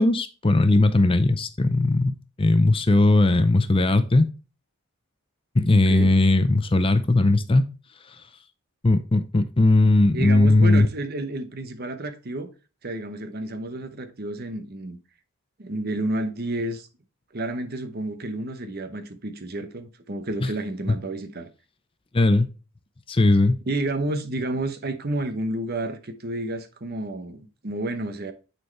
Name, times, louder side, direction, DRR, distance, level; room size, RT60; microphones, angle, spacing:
voice 1, 0.0-4.3 5.5-7.7 8.8-10.9 20.4-20.5 22.1-22.5 23.1-23.6, left 2 dB, 25° left, 0.5 m, -18 dB
voice 2, 10.1-12.5 12.8-15.0 15.6-16.9 17.3-21.5 23.7-28.3, right 1 dB, 45° right, 0.9 m, -30 dB
9.7 x 4.5 x 3.1 m
head